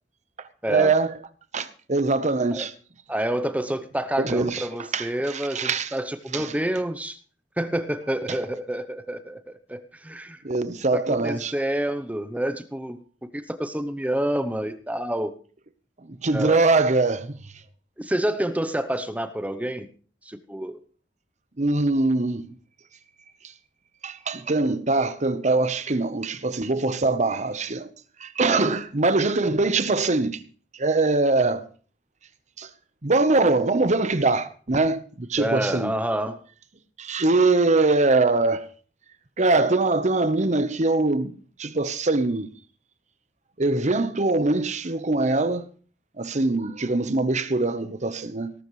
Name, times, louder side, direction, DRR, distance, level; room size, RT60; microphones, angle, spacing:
voice 1, 0.7-1.2 1.5-2.7 4.2-4.7 4.9-5.9 6.3-6.5 8.3-8.4 10.4-11.5 16.0-17.4 21.6-22.5 24.0-27.9 28.2-30.4 30.7-31.7 32.6-32.7 33.0-35.9 37.0-38.7 39.4-41.3 41.6-42.5 43.6-45.6 46.2-48.5, right 3 dB, 40° right, 1.0 m, -23 dB
voice 2, 3.1-7.2 7.6-10.4 10.9-15.3 16.3-16.6 18.0-19.9 20.2-20.8 28.4-28.8 35.4-36.4, right 1 dB, 10° right, 0.8 m, -28 dB
19.0 x 12.5 x 3.2 m
head